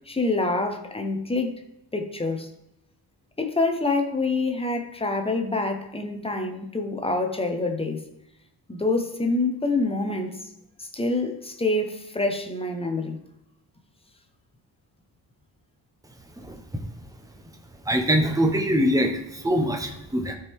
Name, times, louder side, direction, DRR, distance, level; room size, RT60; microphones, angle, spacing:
voice 1, 0.1-1.5 1.9-2.5 3.4-8.0 8.7-10.4 10.8-13.2, left 2 dB, 15° left, 0.8 m, -26 dB
voice 2, 16.4-16.8 17.8-20.3, equal, 10° right, 0.9 m, -23 dB
13.0 x 4.6 x 3.6 m
wide cardioid pair, 165°, 41 cm